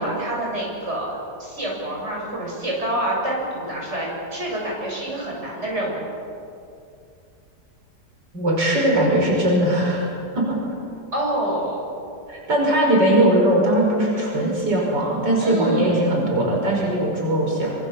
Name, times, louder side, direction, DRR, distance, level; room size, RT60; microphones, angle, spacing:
voice 1, 0.0-6.0 11.1-11.8 15.4-16.1, right 1 dB, 40° right, -3 dB, 7.7 m, -27 dB
voice 2, 8.3-10.1 10.3-10.6 12.3-17.7, right 1 dB, 80° right, -2 dB, 6.3 m, -20 dB
27.0 x 26.5 x 7.4 m, 2.5 s
omnidirectional pair, 1.9 m